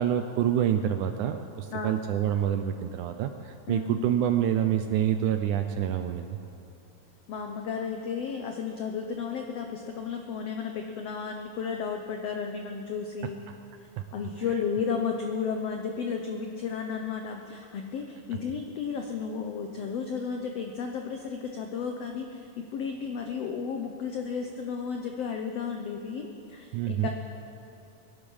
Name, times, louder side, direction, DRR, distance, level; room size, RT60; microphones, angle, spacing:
voice 1, 0.0-6.4 13.5-13.6 14.0-14.1 26.7-27.1, right 10 dB, 80° right, 8 dB, 1.8 m, -27 dB
voice 2, 1.7-2.0 3.7-3.9 7.3-13.4 14.1-27.1, left 6 dB, 90° left, 3 dB, 1.4 m, -33 dB
21.5 x 11.5 x 5.6 m, 2.9 s
omnidirectional pair, 4.1 m